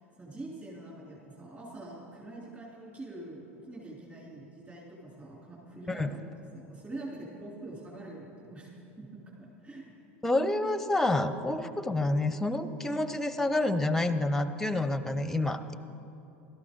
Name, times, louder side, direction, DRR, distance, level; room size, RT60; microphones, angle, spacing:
voice 1, 0.2-6.3 6.5-8.7 9.0-9.9, right 2 dB, 20° right, -5 dB, 3.2 m, -44 dB
voice 2, 10.2-15.7, left 2 dB, 5° left, 11 dB, 0.7 m, -28 dB
17.0 x 13.0 x 3.7 m, 2.8 s
hypercardioid pair, 80°, 7 cm